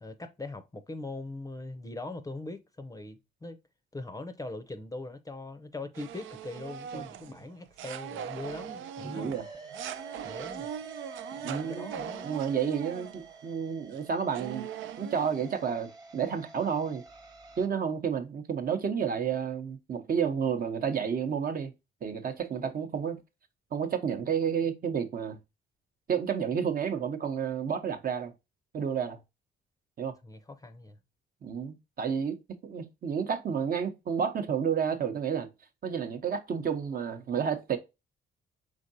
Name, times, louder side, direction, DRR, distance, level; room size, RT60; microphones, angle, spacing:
voice 1, 0.0-3.6 3.9-9.4 10.2-10.7 11.4-12.3 30.2-31.0, left 2 dB, 15° left, 0.6 m, -41 dB
sound 1, 5.9-13.5 13.9-14.0 14.3-15.6, right 9 dB, 75° right, 0.5 m, -41 dB
sound 2, 9.0-17.7, right 3 dB, 20° right, 1.0 m, -48 dB
voice 2, 9.0-9.5 11.4-11.9 12.2-14.7 15.0-17.0 17.6-21.7 22.0-23.2 23.7-25.4 26.1-28.3 28.7-29.2 30.0-30.1 31.4-32.4 32.6-35.5 35.8-37.8, right 7 dB, 45° right, 0.8 m, -30 dB
5.1 x 3.6 x 2.6 m
cardioid pair, 90°, 20 cm